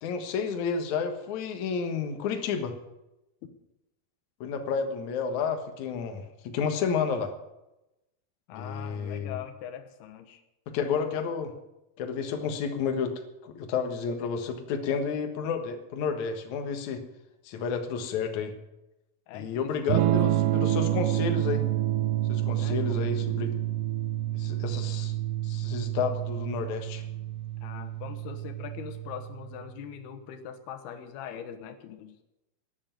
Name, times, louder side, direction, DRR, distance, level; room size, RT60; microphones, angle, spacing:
voice 1, 0.0-2.8 4.4-7.3 8.5-9.4 10.7-11.5 12.0-17.1 17.4-18.5 19.3-21.6 22.3-23.6 24.3-25.1 25.4-27.1, left 6 dB, 60° left, 5 dB, 2.5 m, -31 dB
voice 2, 8.5-10.4 19.3-20.3 22.6-23.0 27.6-32.2, left 9 dB, 90° left, 8 dB, 3.2 m, -42 dB
Electric guitar / Strum, 19.9-29.7, right 13 dB, 80° right, 2.0 m, -28 dB
11.5 x 10.5 x 9.2 m, 0.93 s
omnidirectional pair, 4.4 m